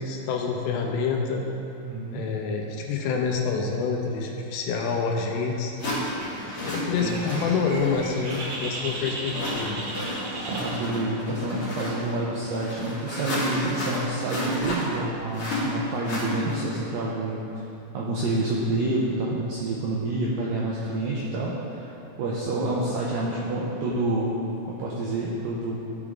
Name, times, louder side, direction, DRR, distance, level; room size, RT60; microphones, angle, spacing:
voice 1, 0.0-1.4 2.1-5.7 6.6-9.8, left 5 dB, 85° left, 1 dB, 2.8 m, -27 dB
voice 2, 1.8-2.2 7.0-7.2 10.5-17.4 17.9-21.9 22.2-24.4 24.7-25.7, right 2 dB, 90° right, -4 dB, 1.9 m, -28 dB
sound 1, 4.9-5.0 5.8-16.9, left 1 dB, 40° left, 2.3 m, -32 dB
Bird, 6.2-11.2, right 2 dB, 65° right, 2.0 m, -37 dB
13.5 x 4.7 x 3.7 m, 2.9 s
omnidirectional pair, 4.9 m